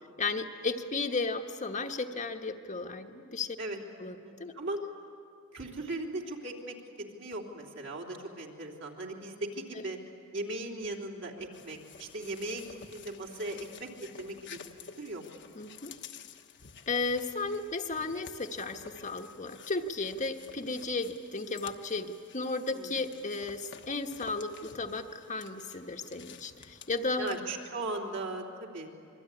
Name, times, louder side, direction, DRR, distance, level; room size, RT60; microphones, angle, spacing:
voice 1, 0.2-3.6 4.0-4.5 15.5-15.9 16.9-27.4, left 3 dB, 35° left, 4 dB, 1.2 m, -34 dB
voice 2, 4.2-4.8 5.5-6.8 7.1-10.0 10.3-13.9 14.2-14.7 15.0-15.2 22.7-22.9 27.2-28.9, right 2 dB, 60° right, 0 dB, 3.5 m, -38 dB
sound 1, 11.5-27.4, left 7 dB, 55° left, 1.2 m, -51 dB
26.5 x 23.0 x 9.8 m, 2.4 s
head